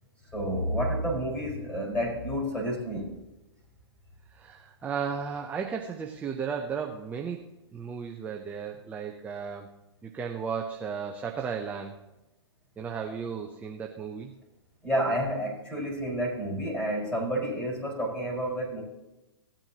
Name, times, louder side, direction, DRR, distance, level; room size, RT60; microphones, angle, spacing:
voice 1, 0.3-3.1 14.8-18.8, equal, 10° left, -3 dB, 4.2 m, -30 dB
voice 2, 4.3-7.4 7.7-9.7 10.0-12.0 12.8-14.3, right 6 dB, 10° right, 2 dB, 0.6 m, -34 dB
17.0 x 8.9 x 2.8 m, 0.98 s
hypercardioid pair, 135°, 15 cm